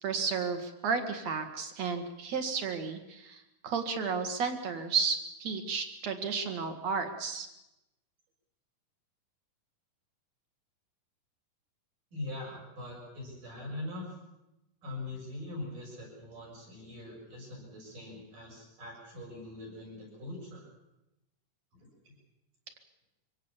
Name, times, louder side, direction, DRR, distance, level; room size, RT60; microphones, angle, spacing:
voice 1, 0.0-7.5, right 5 dB, 55° right, 7 dB, 2.9 m, -33 dB
voice 2, 12.1-14.1 14.8-20.6 22.0-22.1, left 2 dB, 70° right, -2 dB, 8.0 m, -42 dB
25.0 x 17.0 x 7.3 m, 0.92 s
omnidirectional pair, 3.9 m